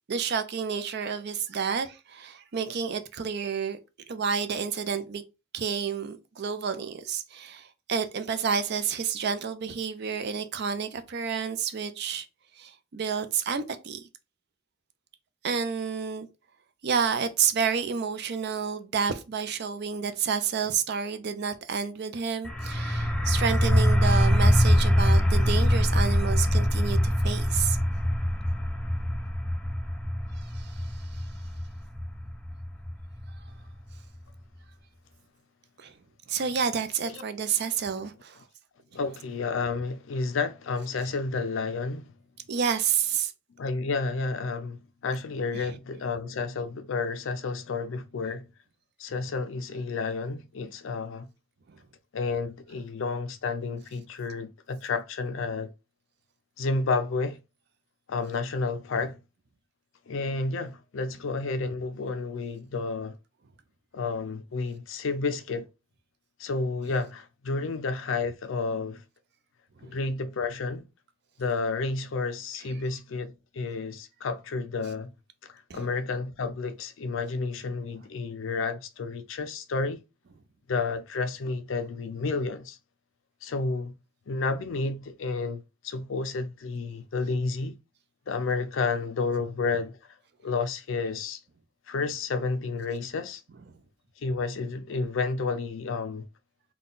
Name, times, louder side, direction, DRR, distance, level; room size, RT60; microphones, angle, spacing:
voice 1, 0.1-3.8 4.1-5.2 5.5-12.3 12.6-14.1 15.4-16.3 16.8-27.8 30.5-30.7 35.8-35.9 36.3-38.4 42.5-43.3 45.5-45.6 69.8-69.9 75.7-75.9, right 6 dB, 55° right, 0.5 m, -30 dB
sound 1, 22.4-33.9, equal, 5° left, 0.4 m, -24 dB
voice 2, 38.9-42.1 43.6-48.5 49.0-51.3 52.1-55.7 56.6-57.4 58.1-59.2 60.1-63.2 63.9-65.7 66.4-69.0 69.8-70.9 71.4-75.1 75.5-80.0 80.7-82.8 83.4-83.9 84.3-87.8 88.3-90.0 90.4-91.4 91.9-93.4 94.2-96.2, left 4 dB, 70° left, 0.4 m, -31 dB
3.7 x 2.2 x 3.8 m
head